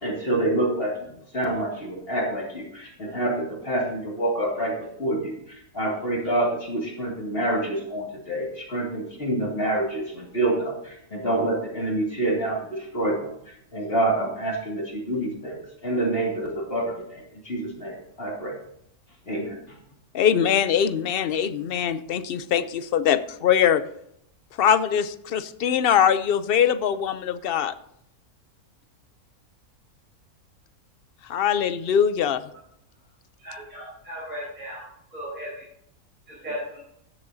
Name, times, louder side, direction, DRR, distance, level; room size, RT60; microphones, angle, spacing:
voice 1, 0.0-18.6 19.3-19.8, right 1 dB, 40° left, -1 dB, 2.5 m, -27 dB
voice 2, 20.1-23.8 24.6-27.7 31.3-32.4, left 8 dB, 55° left, 12 dB, 0.6 m, -22 dB
voice 3, 33.4-34.9 35.1-35.5 36.3-36.8, equal, 30° right, -7 dB, 5.1 m, -36 dB
16.5 x 11.0 x 2.7 m, 0.74 s
omnidirectional pair, 1.6 m